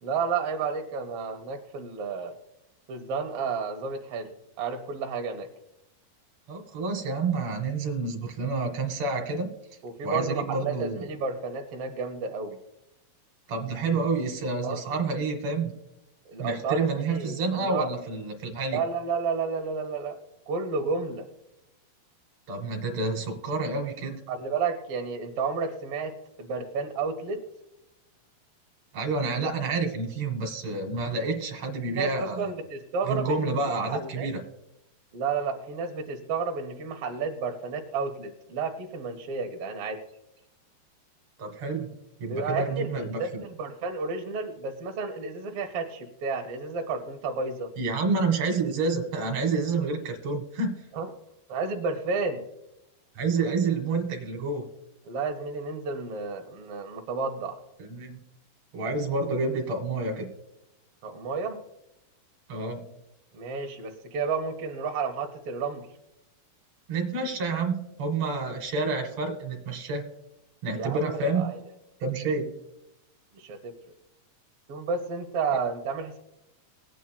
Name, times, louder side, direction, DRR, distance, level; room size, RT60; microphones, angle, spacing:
voice 1, 0.0-2.4 2.9-4.3 4.6-5.5 9.8-12.6 14.6-14.8 16.2-17.9 18.7-20.2 20.5-21.3 24.3-27.4 31.9-33.5 33.9-34.3 35.1-40.0 42.3-47.7 50.9-51.1 51.5-52.4 55.0-57.6 61.0-61.6 63.3-65.9 70.8-71.6 73.3-73.8 74.7-76.2, right 5 dB, 75° right, 3 dB, 1.3 m, -31 dB
voice 2, 6.5-9.5 10.0-11.0 13.5-15.7 16.4-18.8 22.5-24.2 28.9-32.5 33.1-34.4 41.4-41.9 42.2-43.4 47.8-50.8 53.2-54.7 57.8-58.2 58.7-60.3 62.5-62.8 66.9-70.1 70.6-71.5 72.0-72.6, right 3 dB, 55° right, 3 dB, 2.4 m, -29 dB
21.0 x 9.1 x 2.2 m, 0.89 s
omnidirectional pair, 4.3 m